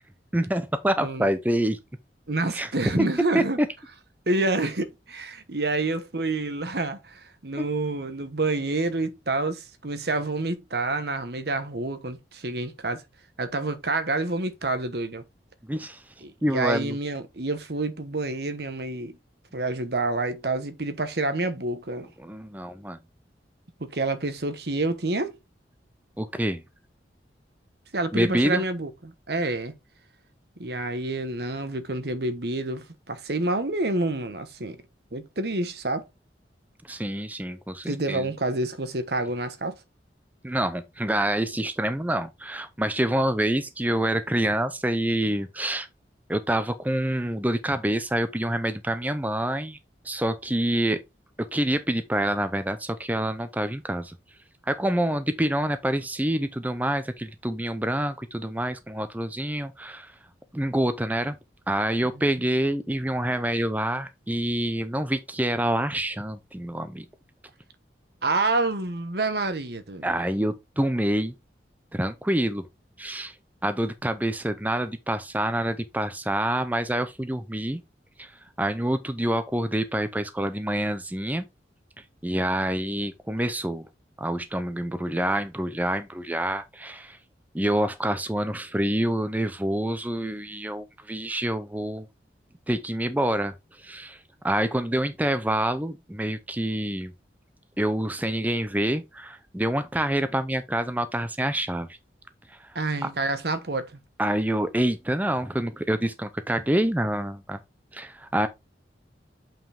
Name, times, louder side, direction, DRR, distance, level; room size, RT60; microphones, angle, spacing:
voice 1, 0.3-1.8 2.5-2.7 3.0-3.1 3.3-3.7 7.6-7.7 15.7-16.0 16.4-17.0 22.2-23.0 26.2-26.6 28.1-28.6 36.9-38.2 40.4-45.9 46.3-49.8 50.0-51.0 51.4-54.2 54.7-60.1 60.5-61.4 61.7-67.1 70.0-71.3 71.9-72.6 73.0-73.3 73.6-77.8 78.2-78.3 78.6-81.5 82.2-83.9 84.2-87.2 87.5-92.1 92.7-94.2 94.4-97.1 97.8-102.0 102.5-102.7 104.2-107.6 107.9-108.5, right 1 dB, 10° right, 0.6 m, -27 dB
voice 2, 2.3-3.6 4.3-13.0 13.4-15.2 16.2-19.2 19.5-22.1 23.8-25.4 27.9-29.7 30.6-34.8 35.1-36.1 37.9-39.7 62.1-62.4 68.2-70.1 102.7-104.0, right 2 dB, 60° right, 1.1 m, -28 dB
7.2 x 5.8 x 3.5 m
head